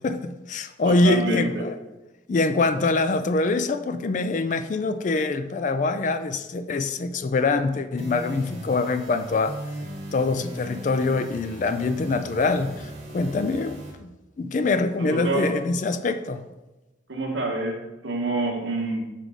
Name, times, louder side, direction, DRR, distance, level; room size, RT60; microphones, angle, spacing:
voice 1, 0.0-1.8 2.3-9.6 10.1-12.9 13.1-14.1 14.4-16.4, left 3 dB, 40° left, 10 dB, 0.3 m, -24 dB
voice 2, 0.8-1.7 15.0-15.6 17.1-19.0, right 2 dB, 70° right, 2 dB, 1.1 m, -27 dB
sound 1, 8.0-13.9, equal, 35° right, 1.3 m, -38 dB
6.5 x 3.8 x 4.8 m, 1.1 s
head